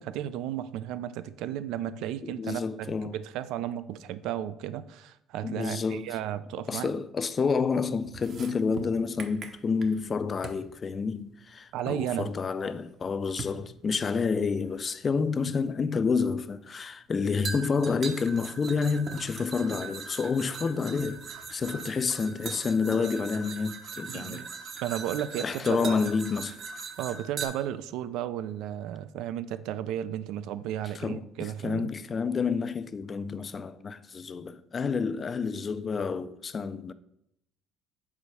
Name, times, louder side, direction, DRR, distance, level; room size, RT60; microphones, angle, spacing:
voice 1, 0.0-6.9 11.7-12.3 24.1-24.5 24.8-26.0 27.0-31.9, right 11 dB, 80° right, 0.3 m, -34 dB
voice 2, 2.2-3.2 5.4-6.1 6.7-21.2 21.5-24.5 25.4-26.6 30.9-36.9, left 5 dB, 30° left, 0.3 m, -29 dB
sound 1, 8.1-10.1 10.4-10.7 12.1-12.2 13.4-13.6 14.9-15.0 17.4-27.5, right 5 dB, 45° right, 0.7 m, -40 dB
4.8 x 4.0 x 5.5 m
cardioid pair, 125°, 0 cm